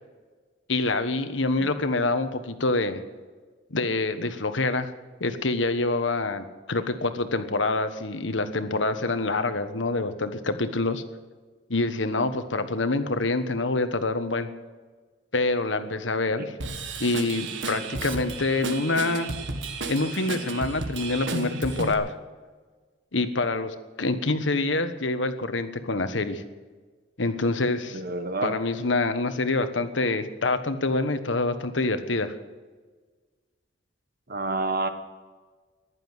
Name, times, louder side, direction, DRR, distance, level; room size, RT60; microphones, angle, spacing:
voice 1, 0.7-3.0 3.7-4.9 5.2-11.0 11.7-14.5 15.3-16.5 17.0-19.3 19.9-22.1 23.1-26.4 27.2-28.0 28.4-32.3, left 2 dB, 80° left, 9 dB, 1.3 m, -26 dB
Drum kit / Drum, 16.6-21.9, right 3 dB, 85° right, 1.6 m, -33 dB
voice 2, 27.9-28.6 34.3-34.9, right 2 dB, 55° right, 8 dB, 1.5 m, -28 dB
15.0 x 11.5 x 8.1 m, 1.4 s
head